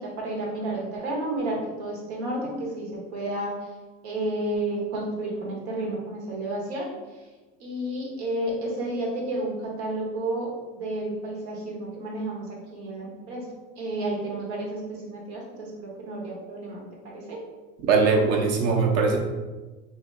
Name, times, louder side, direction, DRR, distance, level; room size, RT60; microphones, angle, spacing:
voice 1, 0.0-3.7 4.0-7.3 7.6-13.5 13.8-17.4, right 1 dB, 85° right, -2 dB, 1.2 m, -31 dB
voice 2, 17.8-19.2, right 4 dB, 50° right, 2 dB, 0.8 m, -21 dB
2.9 x 2.7 x 3.6 m, 1.2 s
supercardioid pair, 105°, 32 cm